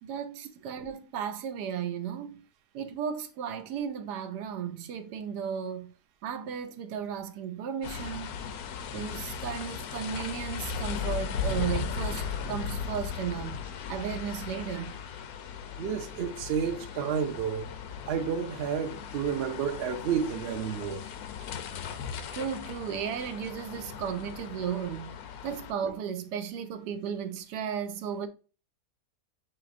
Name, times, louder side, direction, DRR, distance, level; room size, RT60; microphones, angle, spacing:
voice 1, 0.0-2.4 2.7-5.9 6.2-8.3 8.9-13.6 13.9-14.9 22.3-25.1 25.4-28.3, right 8 dB, 90° right, 1.2 m, -35 dB
sound 1, 7.8-25.7, left 6 dB, 70° left, 1.0 m, -37 dB
voice 2, 15.8-17.6 18.1-21.0, right 7 dB, 60° right, 0.7 m, -30 dB
6.4 x 3.1 x 2.5 m
omnidirectional pair, 1.7 m